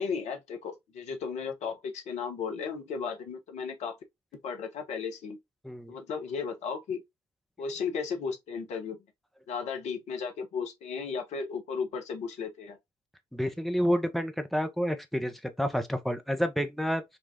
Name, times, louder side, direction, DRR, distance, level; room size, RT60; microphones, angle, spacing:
voice 1, 0.0-4.0 4.3-5.4 5.9-7.0 7.6-9.0 9.5-12.8, left 5 dB, 55° left, 0.7 m, -35 dB
voice 2, 5.6-6.0 13.3-17.0, equal, ahead, 0.6 m, -29 dB
4.2 x 2.3 x 2.6 m
figure-of-eight pair, 40°, 14 cm